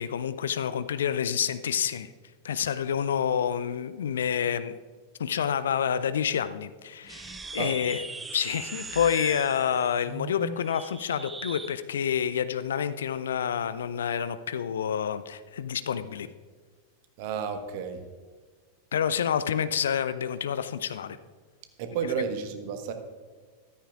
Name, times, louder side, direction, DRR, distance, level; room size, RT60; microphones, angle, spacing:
voice 1, 0.0-2.1 2.4-4.7 5.2-8.0 8.3-16.3 18.9-21.2, left 8 dB, 65° left, 13 dB, 0.4 m, -28 dB
sound 1, 7.0-11.8, right 3 dB, 10° right, 0.6 m, -40 dB
voice 2, 17.2-18.0 21.8-22.9, right 6 dB, 50° right, 7 dB, 1.2 m, -31 dB
14.0 x 13.0 x 2.5 m, 1.5 s
figure-of-eight pair, 90°, 0 cm